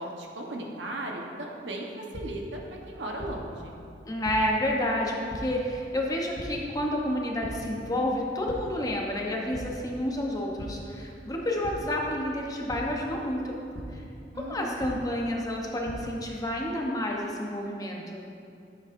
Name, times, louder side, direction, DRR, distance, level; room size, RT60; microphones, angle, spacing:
voice 1, 0.0-3.8 14.3-14.7, right 1 dB, 90° right, 0 dB, 1.0 m, -36 dB
sound 1, 2.1-2.2 3.2-3.3 4.2-4.3 5.3-5.4 6.3-6.4 7.4-7.5 8.0-8.1 8.5-8.6 9.5-9.6 10.6-10.7 11.6-11.7 12.7-12.8 13.7-13.8 14.8-14.9 15.6-15.9, left 1 dB, 65° left, 0.9 m, -40 dB
voice 2, 4.1-13.6 13.9-14.0 14.4-18.3, left 1 dB, 20° left, -1 dB, 0.8 m, -30 dB
9.8 x 7.6 x 2.6 m, 2.5 s
head